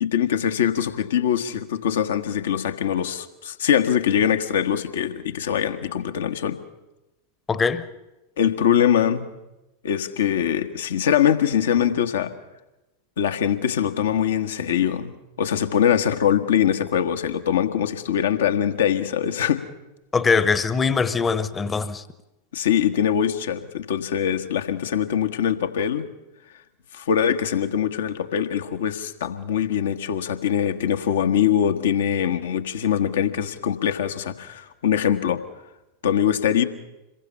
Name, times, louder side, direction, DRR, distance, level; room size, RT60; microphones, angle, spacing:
voice 1, 0.0-6.6 8.4-9.3 9.8-12.3 13.2-19.6 22.5-26.1 26.9-35.4 36.0-36.6, left 9 dB, 60° left, 1.5 m, -22 dB
voice 2, 7.5-7.8 20.1-22.0, left 5 dB, 15° left, 1.1 m, -22 dB
27.0 x 22.0 x 5.6 m
figure-of-eight pair, 90°, 0 cm